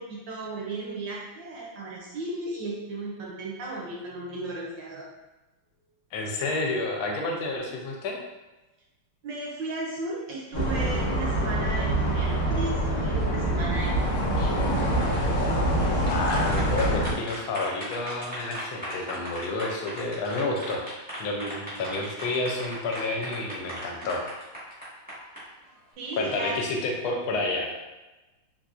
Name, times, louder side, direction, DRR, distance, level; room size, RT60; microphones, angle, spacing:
voice 1, 0.0-5.1 9.2-14.6 26.0-26.6, right 2 dB, 75° right, -3 dB, 1.1 m, -35 dB
voice 2, 6.1-8.2 16.1-20.8 21.2-24.2 26.2-27.7, left 2 dB, 80° left, 1 dB, 1.4 m, -30 dB
sound 1, 10.5-17.1, right 1 dB, 55° left, 1.4 m, -25 dB
sound 2, 15.8-25.4, equal, 5° right, 0.6 m, -38 dB
4.0 x 2.5 x 2.4 m, 1.1 s
omnidirectional pair, 2.3 m